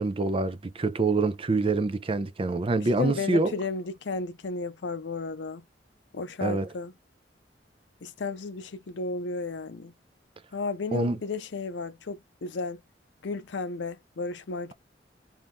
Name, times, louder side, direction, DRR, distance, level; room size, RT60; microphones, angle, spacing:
voice 1, 0.0-3.6 6.4-6.7 10.9-11.2, right 3 dB, 30° right, 0.5 m, -26 dB
voice 2, 3.0-5.6 6.1-6.9 8.0-9.9 10.5-12.8 13.2-14.7, left 3 dB, 85° left, 0.6 m, -33 dB
2.8 x 2.4 x 3.5 m
head